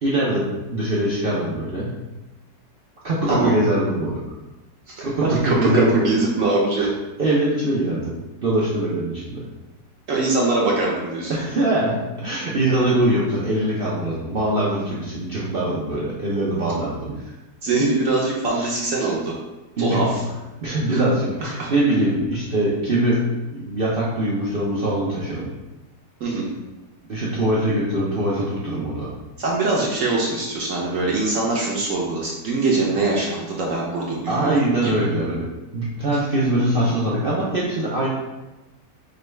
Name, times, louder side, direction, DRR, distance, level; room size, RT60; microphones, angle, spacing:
voice 1, 0.0-1.9 3.0-4.2 5.0-6.1 6.8-6.9 7.2-8.1 8.4-9.4 11.3-17.2 18.6-18.7 19.0-19.1 19.8-20.1 20.6-23.2 23.6-25.5 27.1-29.1 34.3-35.5 35.7-38.1, right 1 dB, 85° right, -7 dB, 0.5 m, -22 dB
voice 2, 5.2-6.9 10.1-11.3 17.6-19.3 19.8-20.2 20.9-21.0 21.4-21.7 26.2-26.5 29.4-34.5 34.8-34.9 36.6-37.0, right 3 dB, 65° right, -3 dB, 0.8 m, -23 dB
5.2 x 2.2 x 3.2 m, 1.1 s
omnidirectional pair, 1.9 m